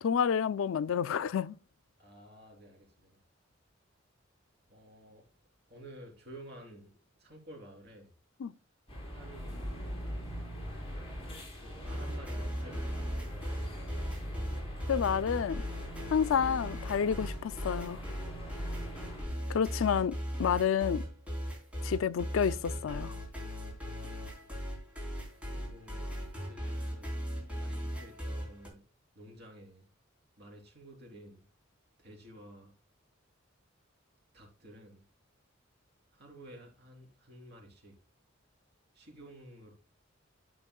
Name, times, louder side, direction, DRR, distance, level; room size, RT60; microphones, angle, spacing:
voice 1, 0.0-1.6 8.4-8.5 14.9-15.6 16.1-18.0 19.5-21.0 21.8-23.1, left 7 dB, 90° left, 0.4 m, -29 dB
voice 2, 2.0-3.2 4.7-5.3 5.7-8.1 9.1-9.7 11.5-13.2 25.4-27.2 27.6-28.8 29.2-29.9 30.4-31.4 32.0-32.7 34.3-35.0 36.1-38.0 38.9-39.7, right 1 dB, 55° right, 3.7 m, -52 dB
sound 1, 8.9-19.2, equal, 30° left, 4.4 m, -42 dB
sound 2, 9.5-12.7 15.3-15.4, left 1 dB, 70° left, 1.7 m, -57 dB
sound 3, 11.8-28.7, equal, 5° right, 3.7 m, -38 dB
11.0 x 7.5 x 2.3 m
head